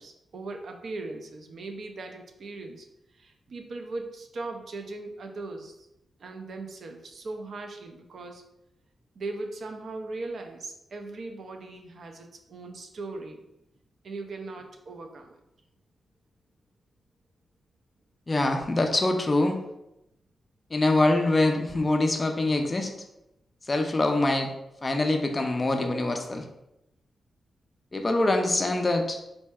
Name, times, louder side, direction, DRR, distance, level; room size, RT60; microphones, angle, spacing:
voice 1, 0.0-2.9 3.1-5.9 6.2-8.4 9.1-13.4 14.0-15.4, right 3 dB, 55° right, 4 dB, 0.4 m, -39 dB
voice 2, 18.3-19.6 20.7-22.9 23.7-24.5 24.8-26.5 27.9-29.2, left 2 dB, 20° left, 4 dB, 0.3 m, -24 dB
4.3 x 2.7 x 2.2 m, 0.85 s
wide cardioid pair, 170°, 0 cm